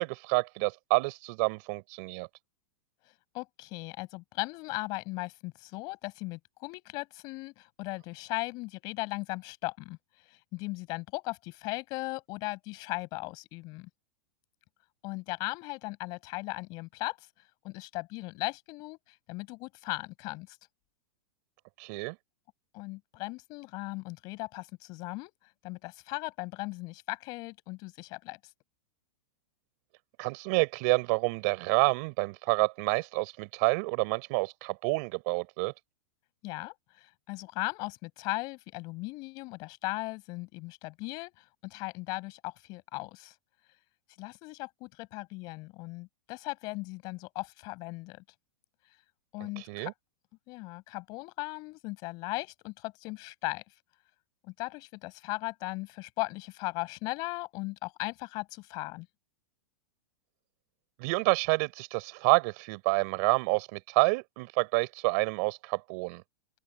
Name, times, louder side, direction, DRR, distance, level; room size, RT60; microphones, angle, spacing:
voice 1, 0.0-2.3 21.8-22.2 30.2-35.7 49.6-49.9 61.0-66.2, right 30 dB, 45° right, 4.1 m, -28 dB
voice 2, 3.3-10.0 10.3-13.9 15.0-17.3 17.6-20.6 22.7-25.3 25.6-28.4 36.4-41.3 41.6-43.3 44.2-48.2 49.3-49.9 50.5-53.6 54.4-59.1, left 23 dB, 35° left, 7.4 m, -37 dB
open air
supercardioid pair, 155°, 11 cm